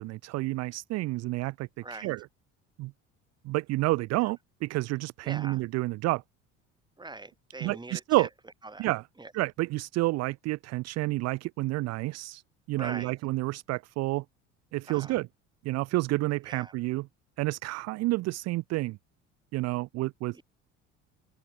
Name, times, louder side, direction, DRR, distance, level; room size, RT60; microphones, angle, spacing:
voice 1, 0.0-2.3 2.8-2.9 3.4-6.2 7.6-8.3 8.8-9.0 9.3-12.4 12.7-14.2 14.7-15.3 15.6-17.1 17.4-19.0 19.5-20.4, right 20 dB, 45° right, 0.4 m, -29 dB
voice 2, 1.8-2.1 4.2-4.3 5.2-5.6 7.0-8.3 8.6-8.9 9.2-9.3 12.7-13.1 14.9-15.2 16.5-16.7 20.3-20.4, right 2 dB, 10° right, 2.0 m, -42 dB
open air
hypercardioid pair, 65°, 37 cm